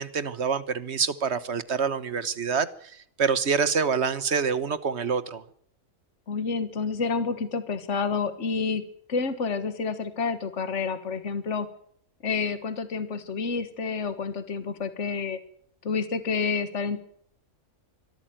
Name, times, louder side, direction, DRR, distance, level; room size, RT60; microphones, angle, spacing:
voice 1, 0.0-2.7 3.2-5.4, right 6 dB, 55° right, 15 dB, 1.4 m, -26 dB
voice 2, 6.3-8.8 9.1-11.7 12.2-15.4 15.8-17.0, left 5 dB, 60° left, 11 dB, 1.8 m, -29 dB
23.5 x 13.5 x 9.1 m, 0.65 s
omnidirectional pair, 1.4 m